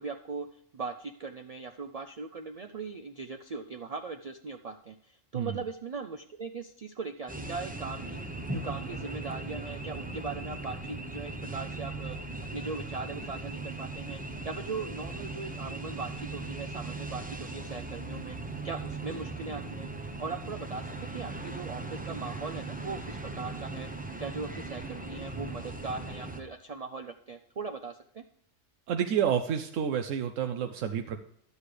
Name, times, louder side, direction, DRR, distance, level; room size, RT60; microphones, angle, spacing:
voice 1, 0.0-12.2 12.5-14.2 14.4-18.4 18.6-19.9 20.2-23.9 24.2-28.2, right 4 dB, 60° right, 7 dB, 0.4 m, -39 dB
sound 1, 7.3-26.4, right 3 dB, 10° right, 0.6 m, -38 dB
voice 2, 28.9-31.2, right 8 dB, 85° right, 6 dB, 1.0 m, -29 dB
11.0 x 8.1 x 3.3 m, 0.68 s
omnidirectional pair, 1.3 m